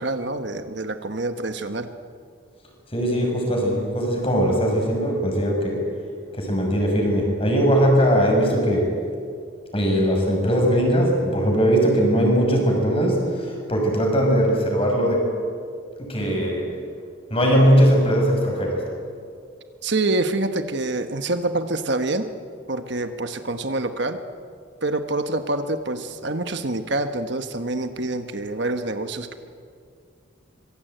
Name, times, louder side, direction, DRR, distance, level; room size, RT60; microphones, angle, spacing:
voice 1, 0.0-1.9 19.8-22.3 22.7-24.2 24.8-29.4, right 2 dB, 55° right, 8 dB, 1.2 m, -26 dB
voice 2, 2.9-5.8 6.3-8.9 9.7-15.3 16.0-16.7 17.3-18.8, equal, 25° left, 1 dB, 6.4 m, -20 dB
25.5 x 23.0 x 9.2 m, 2.3 s
head